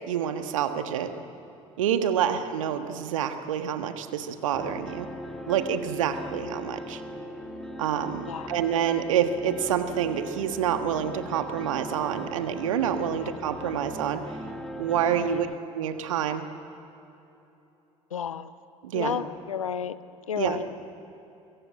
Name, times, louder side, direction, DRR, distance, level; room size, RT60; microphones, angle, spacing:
voice 1, 0.1-1.1 1.8-5.1 5.5-7.0 7.8-14.2 14.8-15.5 15.7-16.4 18.8-19.2 20.4-20.6, right 9 dB, 70° right, 9 dB, 1.5 m, -27 dB
sound 1, 4.5-15.5, left 1 dB, 5° left, 2.3 m, -39 dB
voice 2, 15.2-15.5 18.1-18.5 18.9-20.0 20.3-20.6, left 8 dB, 80° left, 16 dB, 0.8 m, -32 dB
24.5 x 22.5 x 8.9 m, 3.0 s
figure-of-eight pair, 60°, 17 cm